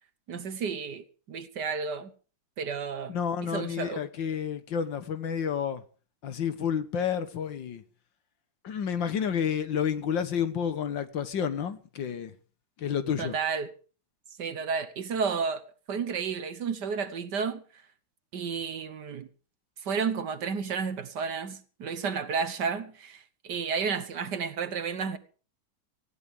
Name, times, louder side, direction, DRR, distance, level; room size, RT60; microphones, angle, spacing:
voice 1, 0.3-2.1 2.6-3.1 3.4-4.0 13.2-13.7 14.4-17.6 18.3-19.3 19.8-25.2, right 5 dB, 60° right, 1.6 m, -32 dB
voice 2, 3.1-5.8 6.2-7.8 8.6-12.3 12.8-13.4, left 7 dB, 65° left, 1.9 m, -30 dB
19.0 x 15.5 x 3.6 m
omnidirectional pair, 2.3 m